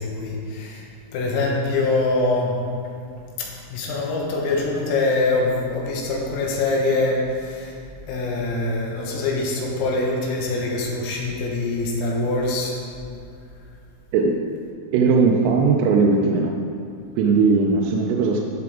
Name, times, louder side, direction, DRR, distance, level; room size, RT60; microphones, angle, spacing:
voice 1, 0.0-2.6 3.4-7.8 8.1-12.8, left 2 dB, 80° left, -2 dB, 4.0 m, -24 dB
voice 2, 14.9-16.5 17.2-18.4, right 4 dB, 90° right, 0 dB, 3.3 m, -18 dB
15.5 x 6.0 x 3.7 m, 2.6 s
omnidirectional pair, 6.0 m